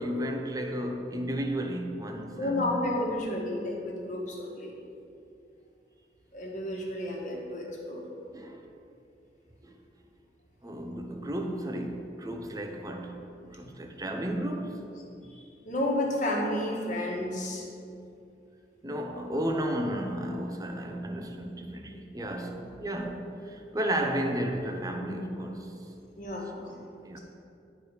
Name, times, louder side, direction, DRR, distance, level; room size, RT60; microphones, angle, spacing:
voice 1, 0.0-2.8 8.3-8.6 9.6-9.7 10.6-14.8 18.8-25.7 26.6-27.2, right 1 dB, 20° right, 0.6 m, -33 dB
voice 2, 2.3-4.7 6.3-8.0 13.6-13.7 15.2-17.7 22.9-23.1 26.2-26.5, left 1 dB, 45° left, 1.4 m, -31 dB
10.0 x 4.8 x 4.8 m
head